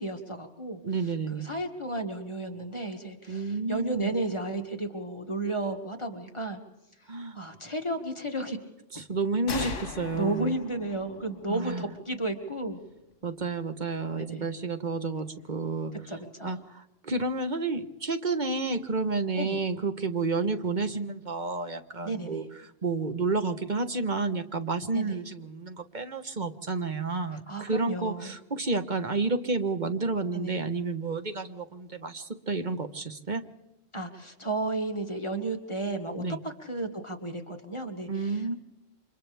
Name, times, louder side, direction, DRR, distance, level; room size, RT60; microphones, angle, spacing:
voice 1, 0.0-0.8 1.3-6.6 7.3-8.6 9.6-9.8 10.1-12.8 14.2-14.5 16.1-16.6 19.3-19.6 22.0-22.5 24.9-25.2 27.5-28.3 30.3-30.6 33.9-38.6, right 2 dB, 25° left, 4 dB, 1.9 m, -33 dB
voice 2, 0.8-1.5 3.3-4.1 7.1-7.4 8.9-10.5 11.5-11.8 13.2-15.9 16.4-22.4 22.8-33.4 36.2-36.4 38.1-38.6, right 3 dB, 40° right, 8 dB, 1.3 m, -30 dB
sound 1, 9.5-13.0, left 5 dB, 75° left, 1.5 m, -40 dB
29.5 x 26.0 x 3.5 m, 0.91 s
omnidirectional pair, 1.3 m